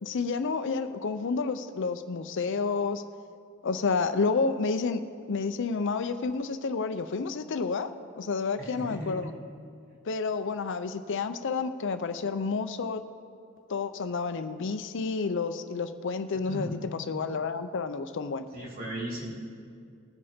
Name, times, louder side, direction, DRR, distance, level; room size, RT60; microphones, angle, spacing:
voice 1, 0.0-3.0 3.6-9.3 10.1-13.0 13.7-18.5, left 4 dB, 60° left, 10 dB, 0.5 m, -30 dB
voice 2, 8.6-9.3 16.4-16.7 18.5-19.3, equal, 45° right, -4 dB, 3.4 m, -36 dB
20.0 x 6.9 x 5.1 m, 2.3 s
head